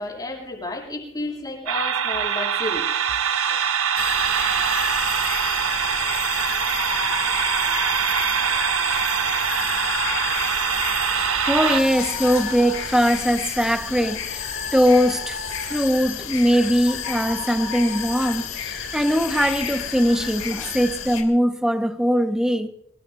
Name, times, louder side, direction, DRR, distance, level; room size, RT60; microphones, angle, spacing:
voice 1, 0.0-2.9, left 1 dB, 20° left, 7.2 m, -31 dB
sound 1, 1.7-11.8, right 8 dB, 85° right, 1.0 m, -23 dB
sound 2, 2.0-8.2, right 5 dB, 30° right, 2.1 m, -43 dB
sound 3, 4.0-21.2, left 6 dB, 75° left, 2.9 m, -31 dB
voice 2, 11.4-22.7, equal, 5° right, 1.3 m, -21 dB
27.5 x 19.0 x 2.7 m
head